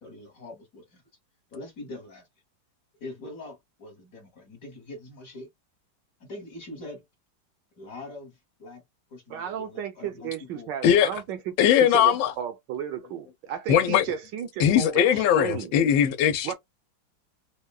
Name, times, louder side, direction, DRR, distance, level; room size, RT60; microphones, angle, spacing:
voice 1, 0.0-1.0 1.5-2.3 3.0-5.5 6.2-7.0 7.8-8.8 9.1-10.7, left 2 dB, 50° left, 1.4 m, -43 dB
voice 2, 9.3-15.7 16.4-16.5, right 10 dB, 75° right, 1.2 m, -34 dB
voice 3, 10.8-11.2 11.6-12.3 13.7-14.0 14.6-16.5, left 9 dB, 85° left, 1.3 m, -20 dB
3.6 x 2.1 x 2.3 m
omnidirectional pair, 2.1 m